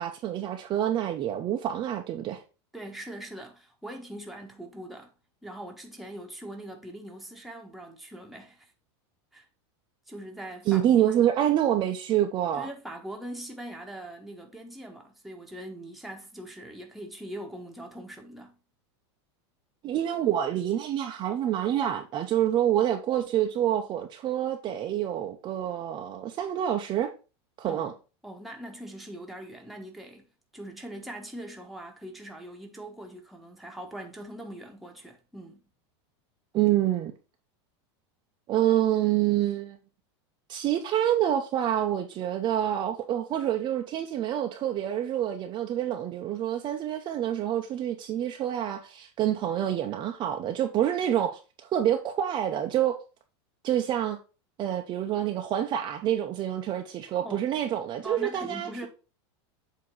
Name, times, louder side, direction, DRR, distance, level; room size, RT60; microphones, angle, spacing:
voice 1, 0.0-2.4 10.7-12.7 19.8-27.1 27.6-27.9 36.5-37.1 38.5-39.8 40.5-51.4 51.7-53.0 53.6-54.2 54.6-58.9, right 11 dB, 30° right, 0.7 m, -27 dB
voice 2, 2.7-5.1 5.4-8.7 9.3-9.4 10.1-11.3 12.5-18.6 27.6-27.9 28.2-35.7 57.2-57.5 58.0-58.9, right 1 dB, ahead, 1.2 m, -42 dB
7.7 x 2.9 x 5.4 m
supercardioid pair, 140°, 15 cm